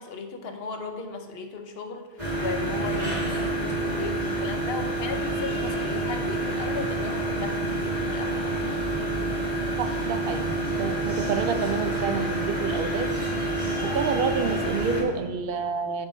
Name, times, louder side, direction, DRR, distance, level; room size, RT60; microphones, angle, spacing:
voice 1, 0.0-8.5, left 4 dB, 70° left, 6 dB, 1.0 m, -36 dB
sound 1, 2.2-15.0, right 2 dB, 25° right, 2.5 m, -28 dB
voice 2, 9.8-13.1 13.8-16.1, right 5 dB, 65° right, 7 dB, 0.7 m, -29 dB
9.8 x 3.6 x 4.4 m, 1.3 s
omnidirectional pair, 1.1 m